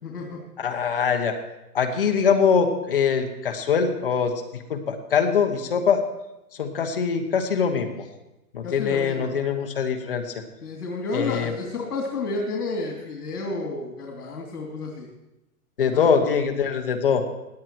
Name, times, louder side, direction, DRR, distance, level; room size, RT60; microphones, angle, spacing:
voice 1, 0.0-0.4 8.6-9.4 10.6-15.1 15.8-16.1, left 3 dB, 80° left, -1 dB, 2.9 m, -31 dB
voice 2, 0.6-1.3 1.7-4.3 4.7-6.0 6.6-8.0 8.5-10.2 11.1-11.5 15.8-17.2, left 6 dB, 35° left, 5 dB, 1.1 m, -23 dB
17.5 x 10.0 x 4.6 m, 0.96 s
hypercardioid pair, 175°, 45 cm